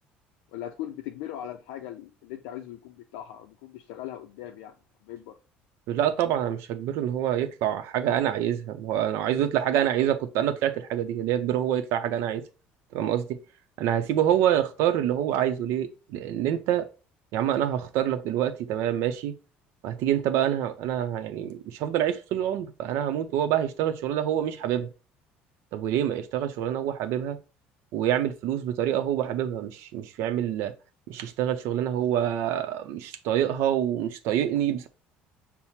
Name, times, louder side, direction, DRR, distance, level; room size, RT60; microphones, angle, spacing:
voice 1, 0.5-4.7 5.0-5.3, left 12 dB, 85° left, 0.4 m, -39 dB
voice 2, 5.9-12.4 12.9-13.4 13.8-16.9 17.3-19.3 19.8-24.9 25.7-27.4 27.9-30.7 31.1-34.9, right 10 dB, 75° right, 0.6 m, -26 dB
5.6 x 2.0 x 4.2 m
supercardioid pair, 85°, 5 cm